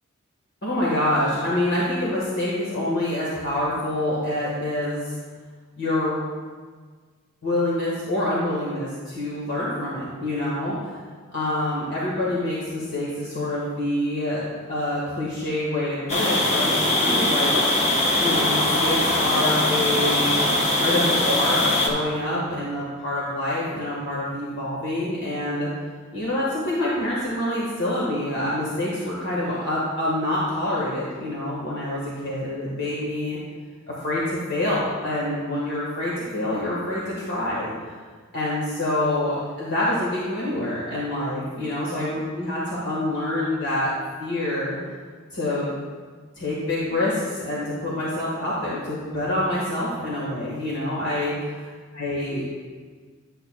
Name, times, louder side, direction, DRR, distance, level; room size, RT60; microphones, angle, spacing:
voice 1, 0.6-5.1 5.8-6.2 7.4-10.8 11.3-17.5 18.2-25.7 26.1-33.4 34.0-37.9 38.3-43.9 44.2-44.8 45.3-45.7 46.4-51.6 51.9-52.4, left 1 dB, 65° left, -7 dB, 1.5 m, -26 dB
sound 1, 16.1-21.9, left 1 dB, 30° left, 1.0 m, -21 dB
11.0 x 7.8 x 2.3 m, 1.5 s
head